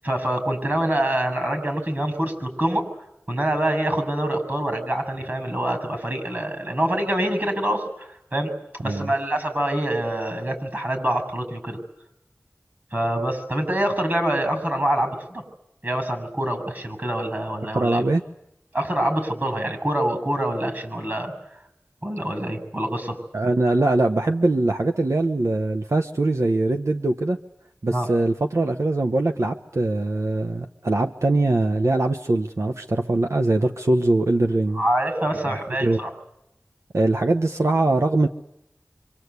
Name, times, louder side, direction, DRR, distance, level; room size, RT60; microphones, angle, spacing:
voice 1, 0.0-2.9 3.3-8.5 8.8-11.8 12.9-15.4 15.8-18.1 18.7-21.3 22.0-23.2 27.9-28.1 34.8-36.1, right 1 dB, 40° right, 6 dB, 7.0 m, -25 dB
voice 2, 17.7-18.2 23.3-27.4 27.8-34.8 35.8-36.0 36.9-38.3, right 2 dB, 85° right, 5 dB, 1.0 m, -22 dB
26.5 x 25.5 x 8.3 m, 0.82 s
wide cardioid pair, 45°, 5 cm